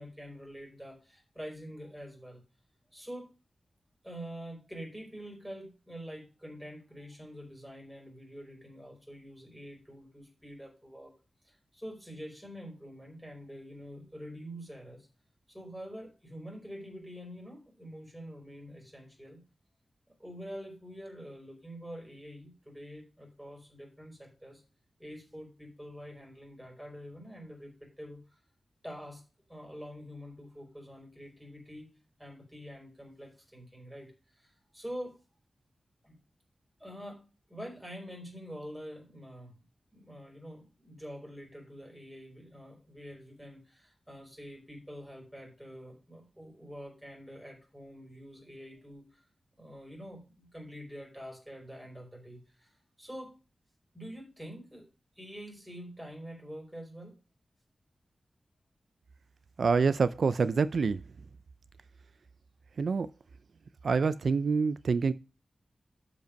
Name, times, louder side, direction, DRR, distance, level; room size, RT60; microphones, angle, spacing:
voice 1, 0.0-2.4 2.9-3.3 4.0-11.1 11.4-15.1 15.5-19.4 20.2-24.6 25.0-28.4 28.8-29.2 29.5-31.9 32.2-35.2 36.0-36.2 36.8-39.6 39.9-49.2 49.6-53.4 53.9-54.9 55.1-57.1, equal, 5° right, 4.9 m, -46 dB
voice 2, 59.6-61.0 62.8-63.1 63.8-65.1, right 5 dB, 70° right, 0.4 m, -26 dB
12.0 x 5.4 x 5.2 m
wide cardioid pair, 125°, 0 cm